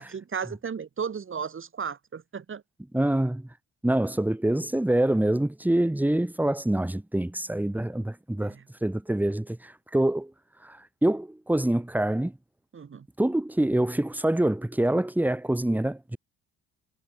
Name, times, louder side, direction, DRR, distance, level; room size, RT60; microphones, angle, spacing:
voice 1, 0.0-2.6 8.4-8.6 12.7-13.1, right 6 dB, 40° right, 5.0 m, -35 dB
voice 2, 2.9-3.5 3.8-8.5 8.8-10.3 10.6-12.3 13.2-16.2, right 1 dB, 5° right, 1.8 m, -25 dB
cardioid pair, 90°, 30 cm